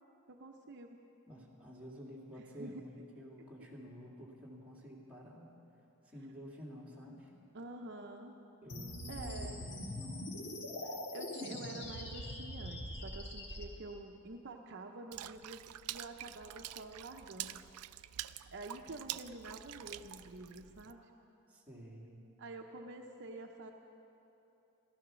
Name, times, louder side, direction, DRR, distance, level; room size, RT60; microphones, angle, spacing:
voice 1, 0.3-1.0 2.3-2.9 7.5-8.4 9.1-9.6 10.8-15.6 15.9-17.7 18.5-21.1 22.4-23.7, right 2 dB, 55° right, 3 dB, 0.7 m, -48 dB
voice 2, 1.3-5.5 6.0-7.3 8.6-10.4 21.5-22.2, equal, 5° right, -5 dB, 2.3 m, -50 dB
sound 1, 8.7-13.7, left 1 dB, 55° left, 1.8 m, -43 dB
Water / Splash splatter, 15.1-20.9, right 14 dB, 85° right, 0.4 m, -46 dB
15.0 x 13.0 x 6.3 m, 2.9 s
head